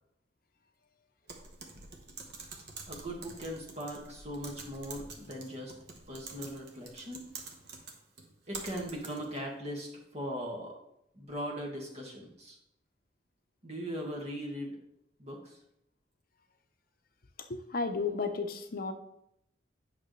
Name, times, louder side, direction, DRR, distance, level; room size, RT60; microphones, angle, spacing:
Typing, 1.3-9.4, right 4 dB, 65° right, 1.1 m, -47 dB
voice 1, 2.9-5.7 6.1-7.2 8.5-10.7 11.1-12.6 13.6-14.8 15.2-15.6, equal, 35° right, 0 dB, 1.7 m, -39 dB
voice 2, 17.4-18.9, left 4 dB, 55° left, 7 dB, 0.7 m, -33 dB
9.1 x 6.0 x 3.2 m, 0.78 s
head